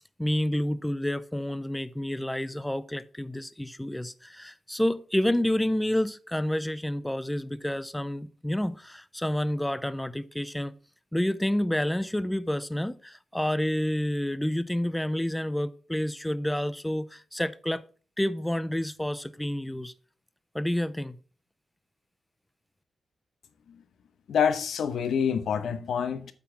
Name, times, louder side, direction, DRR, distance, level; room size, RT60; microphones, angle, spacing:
voice 1, 0.2-10.8 11.1-17.8 18.2-19.9 20.5-21.2, left 1 dB, 5° left, 0.4 m, -29 dB
voice 2, 24.3-26.3, left 7 dB, 80° left, 0.9 m, -26 dB
8.4 x 5.9 x 5.7 m
wide cardioid pair, 120°, 0 cm